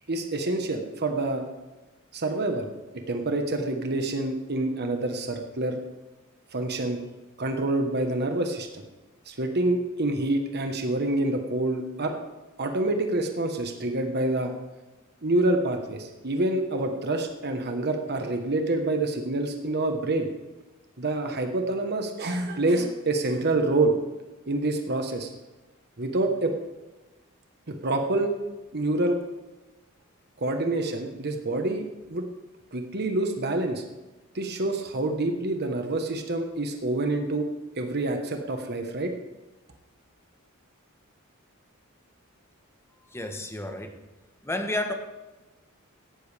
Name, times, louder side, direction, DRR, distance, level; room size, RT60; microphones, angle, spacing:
voice 1, 0.1-1.5 2.1-2.7 3.1-5.8 6.5-7.0 7.4-8.8 9.3-12.2 12.6-14.5 15.2-20.3 21.0-24.0 24.5-25.3 26.0-26.5 27.7-28.3 28.7-29.2 30.4-32.2 32.7-33.8 34.3-37.5 37.8-39.1, right 2 dB, 50° right, 5 dB, 1.3 m, -27 dB
voice 2, 43.1-44.0 44.4-44.9, left 1 dB, 10° left, 5 dB, 1.2 m, -31 dB
16.5 x 12.5 x 3.5 m, 1.1 s
head